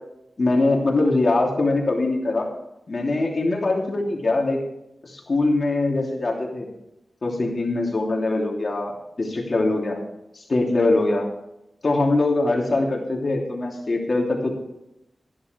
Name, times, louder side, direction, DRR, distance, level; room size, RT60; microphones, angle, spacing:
voice 1, 0.4-2.5 2.9-4.6 5.0-6.7 7.2-10.0 10.3-11.3 11.8-14.5, left 2 dB, 55° left, 0 dB, 3.0 m, -22 dB
16.5 x 11.0 x 3.4 m, 0.85 s
wide cardioid pair, 65°, 0 cm